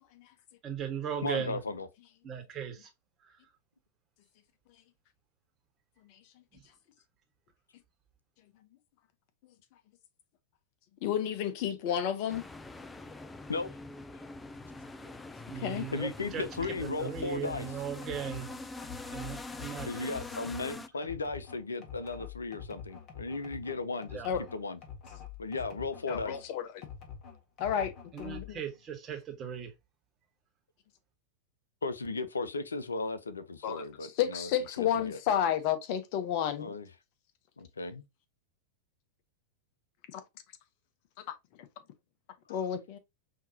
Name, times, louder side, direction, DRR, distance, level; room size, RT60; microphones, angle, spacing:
voice 1, 0.6-1.6 2.2-2.9 15.0-15.1 15.5-16.4 16.8-18.5 19.1-20.1 24.1-24.3 28.1-29.7, right 8 dB, 30° right, 1.5 m, -38 dB
voice 2, 1.2-1.9 13.5-13.7 15.9-17.7 19.8-24.2 24.5-24.8 25.4-26.4 31.8-34.5 34.8-35.2 36.6-36.9 37.8-37.9 42.5-42.6, left 3 dB, 85° left, 0.6 m, -36 dB
voice 3, 11.0-12.4 15.6-15.9 24.2-24.4 26.1-26.6 27.6-27.9 28.2-28.6 33.6-33.8 34.2-36.7 42.5-43.0, left 9 dB, 50° left, 0.9 m, -31 dB
sound 1, 12.3-20.9, left 2 dB, 10° left, 0.4 m, -44 dB
sound 2, 16.5-26.5 26.8-28.6, left 7 dB, 35° left, 1.6 m, -47 dB
5.6 x 2.9 x 2.8 m
figure-of-eight pair, 95°, 0 cm